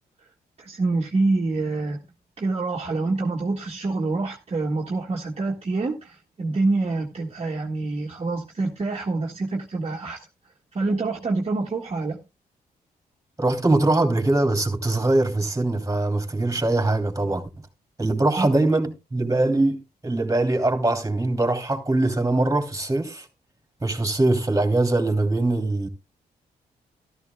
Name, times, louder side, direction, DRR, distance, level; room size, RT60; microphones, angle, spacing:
voice 1, 0.6-2.0 2.4-10.2 10.7-12.2 18.4-18.5, right 3 dB, 40° right, 1.7 m, -26 dB
voice 2, 13.4-17.5 18.0-23.3 23.8-25.9, right 2 dB, 20° right, 3.0 m, -22 dB
13.5 x 13.0 x 2.3 m
cardioid pair, 60°, 17 cm